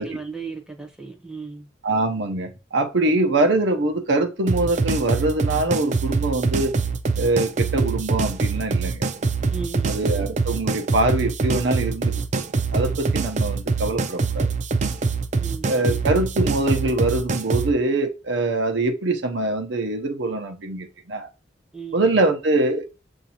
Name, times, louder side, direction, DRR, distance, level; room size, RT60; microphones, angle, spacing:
voice 1, 0.0-1.7 9.5-10.0 15.4-16.0 21.7-22.0, right 4 dB, 5° right, 0.6 m, -36 dB
voice 2, 1.8-6.7 7.2-9.0 9.9-12.4 12.7-14.5 15.6-21.3 21.9-22.9, right 2 dB, 85° right, 0.7 m, -23 dB
sound 1, 4.5-17.7, right 4 dB, 40° right, 0.4 m, -24 dB
7.0 x 2.6 x 2.9 m
head